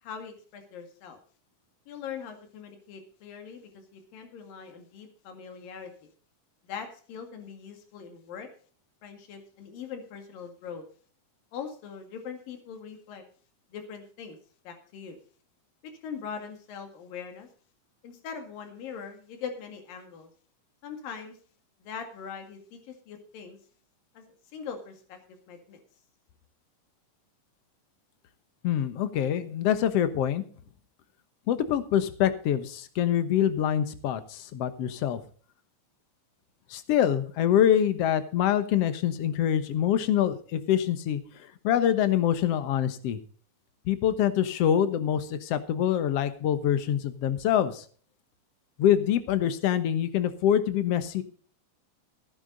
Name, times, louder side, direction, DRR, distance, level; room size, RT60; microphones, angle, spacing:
voice 1, 0.0-1.2 1.9-5.9 6.6-8.5 9.0-10.8 11.5-13.2 13.7-14.4 14.7-15.2 15.8-17.5 18.0-20.3 20.8-21.4 21.8-23.6 24.2-25.8, left 6 dB, 80° left, 5 dB, 3.8 m, -41 dB
voice 2, 28.6-30.4 31.5-35.2 36.7-41.2 41.6-43.2 43.9-47.8 48.8-51.2, left 10 dB, 60° left, 11 dB, 1.8 m, -25 dB
15.5 x 10.5 x 4.0 m, 0.43 s
omnidirectional pair, 3.9 m